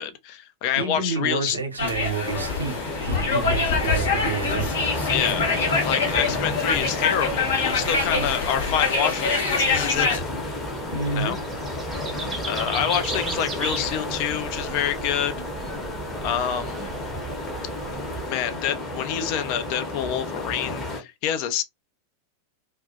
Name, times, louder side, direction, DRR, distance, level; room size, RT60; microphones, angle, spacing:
voice 1, 0.0-1.6 5.1-5.5 5.8-10.2 11.1-11.4 12.5-15.3 16.2-16.9 18.3-21.6, left 9 dB, 45° left, 0.4 m, -27 dB
voice 2, 0.7-4.7 8.1-8.3 10.9-11.4, right 4 dB, 75° right, 0.7 m, -29 dB
sound 1, 1.8-10.2, left 4 dB, 65° left, 0.8 m, -25 dB
sound 2, 2.2-21.0, left 2 dB, 20° left, 0.8 m, -31 dB
sound 3, 9.5-18.3, right 4 dB, 15° right, 0.6 m, -36 dB
2.3 x 2.0 x 2.6 m
figure-of-eight pair, 90°, 0 cm